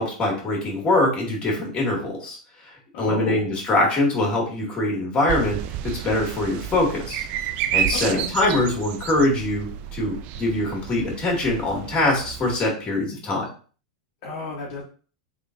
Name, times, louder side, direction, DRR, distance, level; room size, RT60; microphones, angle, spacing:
voice 1, 0.0-2.4 2.6-2.7 3.0-5.6 6.0-7.3 7.7-9.7 9.9-13.5, left 2 dB, 25° left, -1 dB, 2.0 m, -23 dB
voice 2, 2.9-3.5 7.9-8.3 14.2-14.8, left 3 dB, 60° left, -4 dB, 1.2 m, -31 dB
sound 1, 5.3-12.6, right 10 dB, 45° right, 0.3 m, -31 dB
3.7 x 3.4 x 2.5 m, 0.39 s
hypercardioid pair, 115°, 3 cm